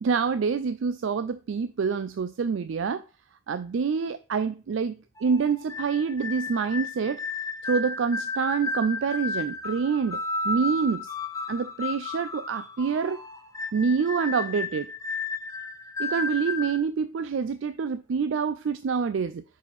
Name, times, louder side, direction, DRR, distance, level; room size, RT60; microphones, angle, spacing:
voice 1, 0.0-3.0 3.5-7.2 7.6-11.1 11.5-13.2 13.7-14.9 16.0-19.4, right 5 dB, 75° right, 0.4 m, -27 dB
sound 1, 5.2-16.8, left 3 dB, 15° left, 0.5 m, -33 dB
5.0 x 4.9 x 5.3 m
head